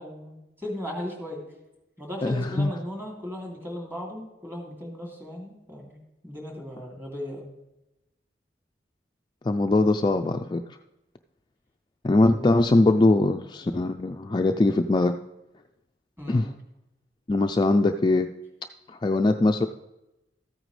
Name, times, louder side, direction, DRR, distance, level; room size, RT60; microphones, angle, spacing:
voice 1, 0.0-1.4 2.0-7.5 12.2-12.8 16.2-16.5, equal, 15° right, -1 dB, 2.8 m, -37 dB
voice 2, 2.2-2.7 9.4-10.6 12.0-15.2 16.3-16.5 17.3-18.3 18.9-19.7, left 2 dB, 25° left, 5 dB, 0.3 m, -21 dB
14.0 x 9.0 x 3.2 m, 0.95 s
head